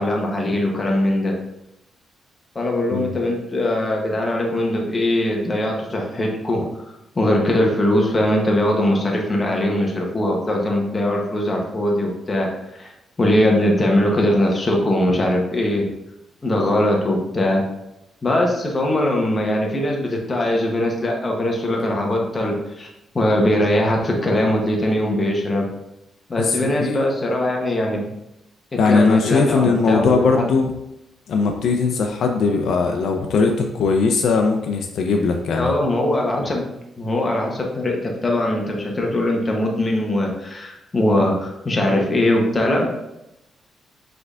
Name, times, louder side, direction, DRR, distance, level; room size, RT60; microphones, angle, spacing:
voice 1, 0.0-1.4 2.5-6.6 7.1-12.5 12.8-12.9 13.2-15.9 16.4-17.7 18.2-22.9 23.1-25.7 26.3-28.1 28.7-30.5 35.6-36.6 37.0-42.9, left 1 dB, 20° left, 0 dB, 0.8 m, -21 dB
voice 2, 26.4-27.0 28.8-30.7 31.3-35.7, left 4 dB, 65° left, 3 dB, 0.5 m, -19 dB
5.9 x 3.3 x 2.4 m, 0.88 s
cardioid pair, 145°, 0 cm